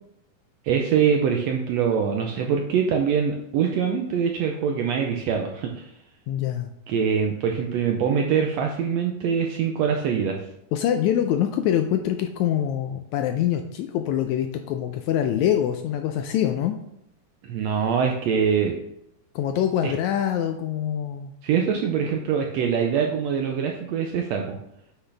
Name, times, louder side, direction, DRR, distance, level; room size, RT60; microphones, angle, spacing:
voice 1, 0.6-5.9 6.9-10.4 17.4-18.8 19.8-19.9 21.4-24.6, right 7 dB, 80° right, 3 dB, 1.5 m, -24 dB
voice 2, 6.3-6.7 10.7-16.8 19.3-21.3, left 10 dB, 80° left, 6 dB, 1.7 m, -24 dB
8.1 x 5.7 x 3.3 m, 0.79 s
omnidirectional pair, 3.6 m